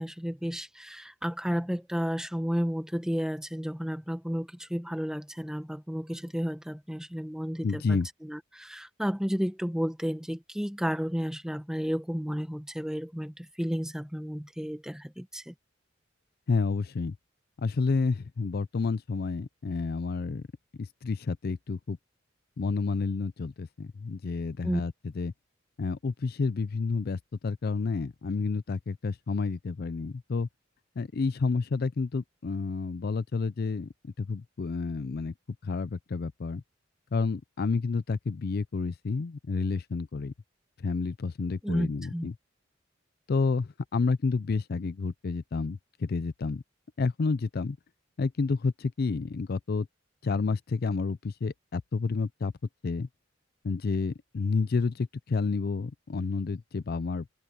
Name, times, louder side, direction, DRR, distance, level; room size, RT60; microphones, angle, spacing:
voice 1, 0.0-15.5 24.6-24.8 41.6-42.3, equal, 5° right, 1.4 m, -32 dB
voice 2, 7.6-8.1 16.5-17.2 17.6-20.4 20.8-22.0 22.6-25.3 25.8-30.5 31.0-35.3 35.6-36.6 37.1-40.3 40.8-42.3 43.3-46.6 47.0-47.8 48.2-49.9 50.2-52.5 52.8-53.1 53.6-57.3, left 4 dB, 55° left, 0.4 m, -30 dB
open air
head